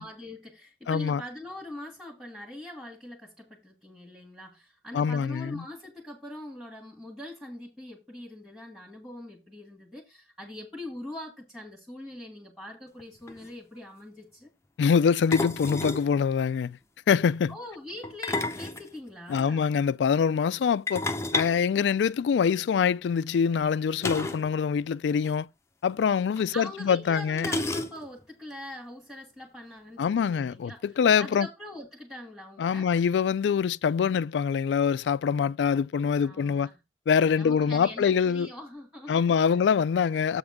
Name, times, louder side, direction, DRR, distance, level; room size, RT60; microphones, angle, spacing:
voice 1, 0.0-14.5 17.5-19.7 26.5-30.8 31.2-32.9 36.2-36.7 37.4-39.6, left 1 dB, ahead, 1.7 m, -42 dB
voice 2, 0.9-1.2 4.9-5.6 14.8-16.8 17.1-17.5 19.3-21.0 21.3-25.5 25.8-27.5 30.0-31.5 32.6-36.7 37.1-38.5 39.1-40.4, left 6 dB, 80° left, 0.3 m, -24 dB
sound 1, 13.0-13.1 13.3-13.5 15.3-16.1 18.0-19.4 20.9-22.5 24.0-24.5 24.8-24.9 25.2-25.3 26.4-26.5 27.4-28.2, left 2 dB, 15° left, 0.6 m, -31 dB
7.9 x 3.5 x 6.4 m
head